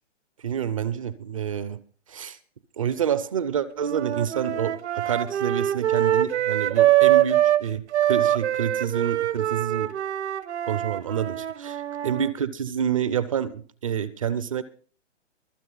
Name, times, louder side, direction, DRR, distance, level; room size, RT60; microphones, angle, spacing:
voice 1, 0.4-1.8 2.1-2.4 2.8-9.9 10.7-14.6, right 8 dB, 30° right, 17 dB, 0.5 m, -28 dB
sound 1, 3.8-7.6 7.9-12.3, right 13 dB, 65° right, 1.0 m, -23 dB
24.0 x 8.0 x 3.9 m, 0.43 s
hypercardioid pair, 155°, 37 cm